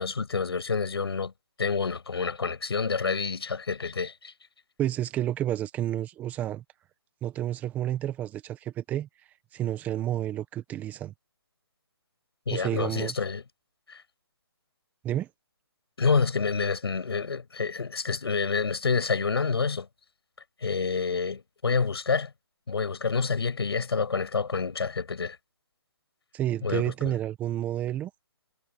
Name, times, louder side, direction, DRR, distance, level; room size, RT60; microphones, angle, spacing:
voice 1, 0.0-1.3 1.6-4.3 12.5-13.4 13.9-14.0 16.0-19.9 20.6-22.3 22.7-25.4 26.6-27.1, left 5 dB, 75° left, 6.6 m, -28 dB
voice 2, 4.8-6.6 7.2-9.1 9.5-11.1 12.5-13.1 15.0-15.3 26.3-28.1, right 12 dB, 10° right, 1.3 m, -30 dB
hypercardioid pair, 155°, 13 cm